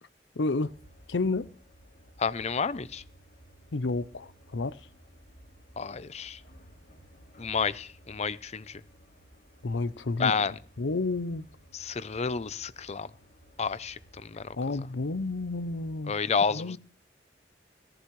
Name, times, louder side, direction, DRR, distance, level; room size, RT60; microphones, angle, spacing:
voice 1, 0.4-0.7 1.1-1.5 3.7-4.8 9.6-10.5 10.8-11.5 14.6-16.1 16.5-16.8, left 3 dB, 85° left, 0.7 m, -30 dB
sound 1, 0.6-16.0, equal, 55° left, 2.5 m, -56 dB
voice 2, 2.2-3.0 5.8-6.4 7.4-8.8 10.2-10.5 11.7-13.1 13.6-14.4 16.1-16.8, left 5 dB, 40° left, 0.6 m, -30 dB
17.0 x 14.5 x 3.2 m
head